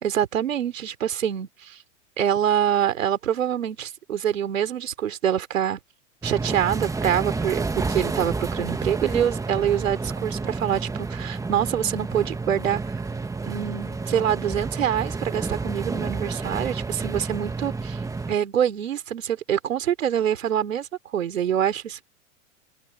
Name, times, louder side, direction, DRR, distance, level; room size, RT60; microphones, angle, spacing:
voice 1, 0.0-1.8 2.2-5.8 6.2-12.9 13.4-18.0 18.3-22.0, right 9 dB, 90° right, 3.5 m, -25 dB
sound 1, 6.2-18.4, right 3 dB, 10° right, 1.5 m, -30 dB
hypercardioid pair, 115°, 38 cm